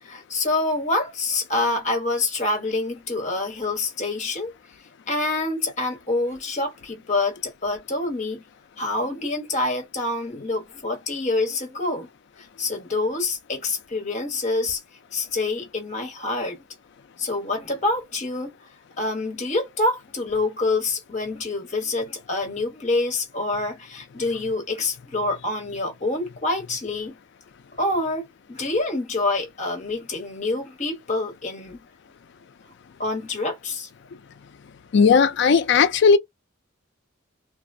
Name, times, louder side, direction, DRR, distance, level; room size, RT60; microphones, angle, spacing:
voice 1, 0.0-4.6 5.1-8.4 8.8-12.1 12.6-14.8 15.1-16.6 17.2-18.5 19.0-27.1 27.8-31.8 33.0-33.9, left 2 dB, 35° left, 1.0 m, -26 dB
voice 2, 34.9-36.2, left 5 dB, 55° left, 0.4 m, -16 dB
2.4 x 2.0 x 2.5 m
head